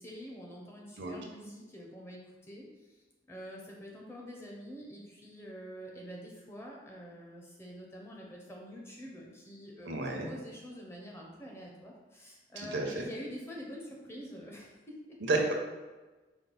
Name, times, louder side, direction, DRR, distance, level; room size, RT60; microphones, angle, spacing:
voice 1, 0.0-15.2, equal, 15° left, -2 dB, 0.6 m, -46 dB
voice 2, 9.8-10.3 12.6-13.0 15.3-15.5, right 2 dB, 80° right, 1 dB, 0.7 m, -31 dB
4.5 x 2.0 x 4.0 m, 1.2 s
head